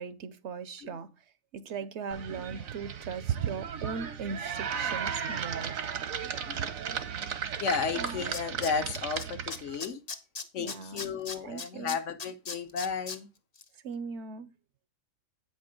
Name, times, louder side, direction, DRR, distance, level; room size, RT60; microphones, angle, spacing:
voice 1, 0.0-5.8 8.0-8.3 10.6-12.0 13.7-14.5, right 5 dB, 65° right, 0.8 m, -40 dB
sound 1, 2.1-9.8, right 8 dB, 80° right, 1.4 m, -35 dB
voice 2, 6.5-6.8 7.6-10.0 10.5-13.3, left 6 dB, 65° left, 1.2 m, -33 dB
Tools, 7.7-7.8 8.1-9.2 9.5-13.2 13.6-13.7, left 4 dB, 35° left, 0.8 m, -38 dB
8.6 x 5.3 x 5.1 m
omnidirectional pair, 1.4 m